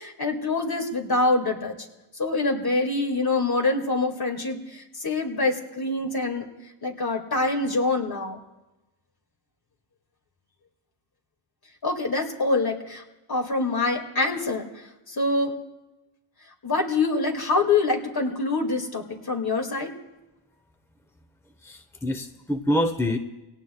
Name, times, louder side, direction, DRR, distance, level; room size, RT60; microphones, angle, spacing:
voice 1, 0.0-1.7 2.2-6.5 6.8-8.4 11.8-13.0 13.3-14.7 15.1-15.5 16.6-19.9, left 3 dB, 45° left, 2 dB, 2.4 m, -25 dB
voice 2, 21.6-23.2, left 1 dB, 5° left, 6 dB, 1.0 m, -26 dB
25.0 x 18.0 x 2.4 m, 1.0 s
cardioid pair, 60°, 50 cm